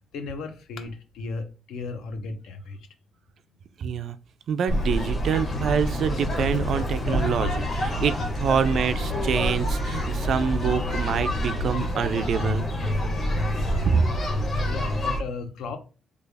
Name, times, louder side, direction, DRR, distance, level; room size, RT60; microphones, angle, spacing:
voice 1, 0.1-2.8 14.7-15.8, left 3 dB, 85° left, 0.6 m, -35 dB
voice 2, 3.8-4.2 4.5-12.7 13.8-14.0, right 7 dB, 55° right, 0.3 m, -26 dB
sound 1, 4.7-15.2, equal, 40° left, 0.9 m, -27 dB
sound 2, 4.9-11.8, left 1 dB, 10° left, 0.6 m, -44 dB
3.3 x 2.3 x 3.3 m
cardioid pair, 160°, 0 cm